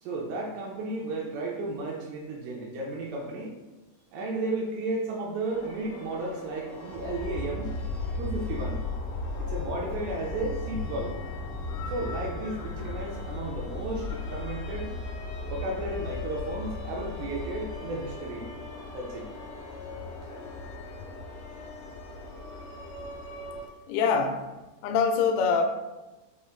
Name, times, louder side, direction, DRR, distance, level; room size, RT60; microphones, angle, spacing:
voice 1, 0.0-3.5 4.1-7.7 8.2-8.8 9.4-11.1 11.9-14.9 15.5-18.5 18.9-19.3, right 2 dB, 80° right, -2 dB, 2.5 m, -33 dB
sound 1, 5.5-23.7, left 3 dB, 70° left, 2.5 m, -36 dB
voice 2, 23.9-24.5 24.8-25.6, left 5 dB, 90° left, 5 dB, 2.9 m, -24 dB
6.9 x 3.2 x 2.4 m, 1.1 s
omnidirectional pair, 5.2 m